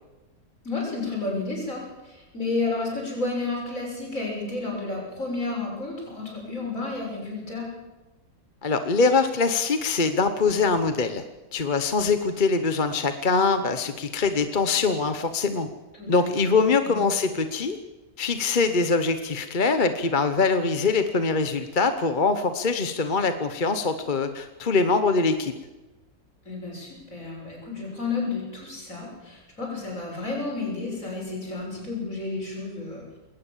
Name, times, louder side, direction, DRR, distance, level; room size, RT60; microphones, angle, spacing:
voice 1, 0.6-7.7 16.0-17.0 26.5-33.0, left 3 dB, 60° left, -1 dB, 7.3 m, -31 dB
voice 2, 8.6-11.2 11.5-15.7 16.1-17.8 18.2-25.5, left 4 dB, 35° left, 9 dB, 1.1 m, -23 dB
21.0 x 18.0 x 7.4 m, 1.1 s
omnidirectional pair, 1.6 m